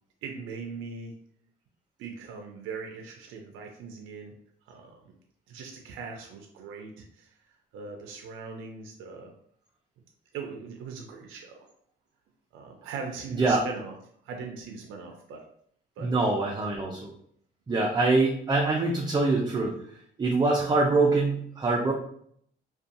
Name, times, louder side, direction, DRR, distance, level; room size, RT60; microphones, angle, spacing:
voice 1, 0.2-1.1 2.0-4.4 4.7-5.0 5.5-7.3 7.7-9.3 10.3-11.7 12.5-14.0 14.2-15.4 16.0-16.1, right 5 dB, 90° right, 3 dB, 0.4 m, -40 dB
voice 2, 16.0-17.1 17.7-19.7 20.2-21.9, right 3 dB, 20° right, -1 dB, 0.4 m, -24 dB
2.6 x 2.2 x 2.5 m, 0.66 s
cardioid pair, 90°, 20 cm